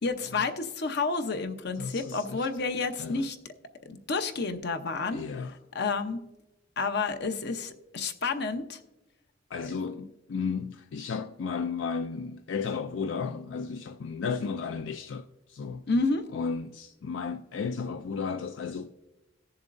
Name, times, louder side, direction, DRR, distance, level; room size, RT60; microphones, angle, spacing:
voice 1, 0.0-3.4 3.9-5.2 5.7-6.2 6.8-8.8 9.7-9.8 15.9-16.2, left 4 dB, 60° left, 0.8 m, -30 dB
voice 2, 1.8-2.5 3.0-3.3 5.1-5.5 9.5-15.8 16.3-18.9, left 5 dB, 85° left, 0.4 m, -34 dB
18.0 x 7.1 x 2.6 m
head